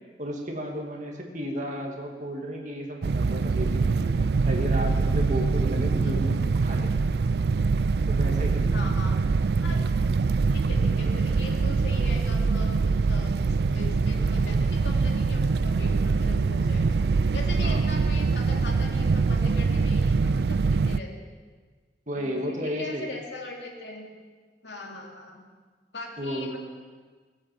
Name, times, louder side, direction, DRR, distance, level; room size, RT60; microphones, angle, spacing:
voice 1, 0.2-4.1 4.5-6.4 6.6-6.9 8.1-8.8 17.6-17.8 22.1-23.1 26.2-26.5, equal, 45° right, 1 dB, 2.3 m, -33 dB
sound 1, 3.0-21.0, right 4 dB, 65° right, 0.4 m, -24 dB
voice 2, 8.7-9.1 9.6-9.8 10.5-17.0 17.3-21.3 22.1-24.1 24.6-25.4 25.9-26.6, left 2 dB, 85° left, 0 dB, 2.9 m, -40 dB
19.5 x 8.7 x 7.6 m, 1.5 s
head